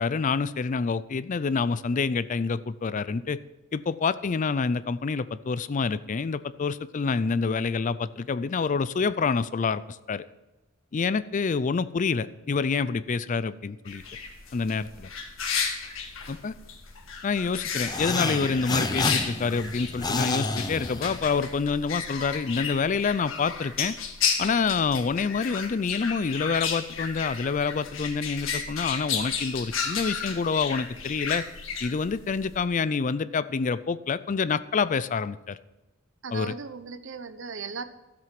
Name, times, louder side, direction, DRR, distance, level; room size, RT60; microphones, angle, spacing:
voice 1, 0.0-3.4 3.7-10.2 10.9-14.0 14.5-15.1 16.3-16.5 17.2-24.0 24.4-31.4 31.8-35.6 36.3-36.5, left 5 dB, 40° left, 16 dB, 0.4 m, -27 dB
sound 1, 13.9-32.6, left 6 dB, 85° left, 1.6 m, -33 dB
sound 2, 17.8-21.5, left 3 dB, 20° left, 0.8 m, -29 dB
voice 2, 36.2-37.8, right 5 dB, 70° right, 12 dB, 0.8 m, -37 dB
13.0 x 7.7 x 5.9 m, 1.0 s
head